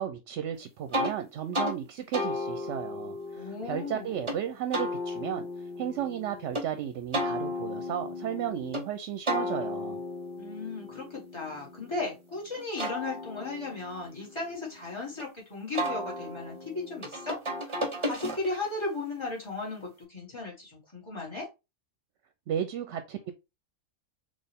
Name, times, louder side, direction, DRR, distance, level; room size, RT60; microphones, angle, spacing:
voice 1, 0.0-5.5 5.8-10.0 22.5-23.3, right 9 dB, 75° right, 0.9 m, -34 dB
sound 1, 0.9-1.1 1.5-1.8 2.1-4.4 4.7-6.7 7.1-8.9 9.3-12.1 12.6-15.2 15.8-18.8, equal, 25° right, 1.0 m, -34 dB
voice 2, 3.4-4.3 10.4-17.4 17.7-21.5, left 3 dB, 20° left, 2.1 m, -36 dB
4.4 x 3.1 x 3.4 m
omnidirectional pair, 1.3 m